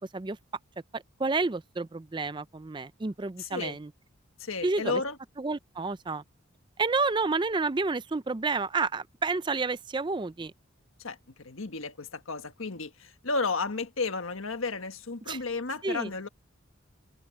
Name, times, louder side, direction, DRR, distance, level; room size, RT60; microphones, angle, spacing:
voice 1, 0.9-3.9 4.6-5.0 5.4-6.2 6.8-10.5 15.3-15.4 15.8-16.1, right 3 dB, 20° right, 0.4 m, -30 dB
voice 2, 3.4-3.8 4.4-5.2 11.0-16.3, left 4 dB, 75° left, 1.5 m, -33 dB
open air
head